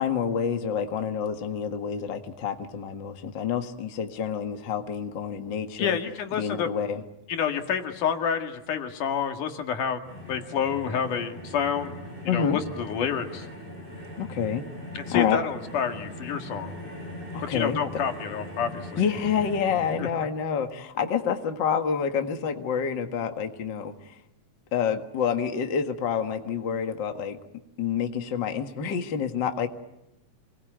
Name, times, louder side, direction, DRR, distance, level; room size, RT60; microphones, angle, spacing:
voice 1, 0.0-6.0 6.4-7.0 12.3-12.6 14.2-14.6 15.1-15.4 17.3-17.8 19.0-23.9 24.7-27.4 27.8-29.7, left 7 dB, 45° left, 6 dB, 2.0 m, -28 dB
voice 2, 5.8-6.7 7.3-13.5 15.0-16.7 17.4-19.0 20.0-20.1, left 7 dB, 85° left, 5 dB, 3.5 m, -29 dB
sound 1, 10.0-20.0, left 1 dB, 15° left, 7.3 m, -40 dB
27.5 x 21.5 x 9.3 m, 0.91 s
omnidirectional pair, 3.5 m